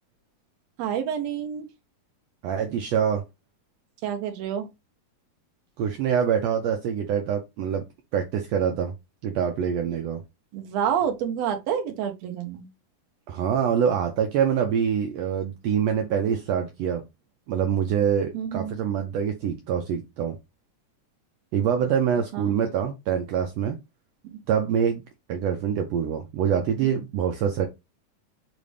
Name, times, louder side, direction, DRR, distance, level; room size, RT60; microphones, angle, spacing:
voice 1, 0.8-1.7 4.0-4.7 10.5-12.7 18.3-18.7 22.3-22.6 24.2-24.4 26.8-26.9, right 8 dB, 70° right, 1.8 m, -28 dB
voice 2, 2.4-3.2 5.8-7.8 8.1-8.9 9.2-10.2 13.3-17.0 17.5-20.4 21.5-23.8 24.5-25.0 25.3-27.7, right 8 dB, 90° right, 1.4 m, -25 dB
5.1 x 2.5 x 3.2 m
omnidirectional pair, 3.6 m